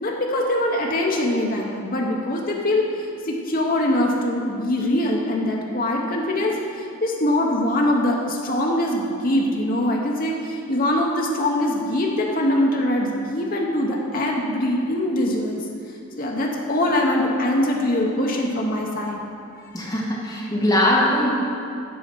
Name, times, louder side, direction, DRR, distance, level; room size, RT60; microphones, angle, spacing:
voice 1, 0.0-2.9 3.3-15.6 16.2-19.2, left 1 dB, 40° left, -1 dB, 0.7 m, -23 dB
voice 2, 19.7-21.3, left 1 dB, 15° left, -5 dB, 1.3 m, -21 dB
8.5 x 4.1 x 5.9 m, 2.5 s
head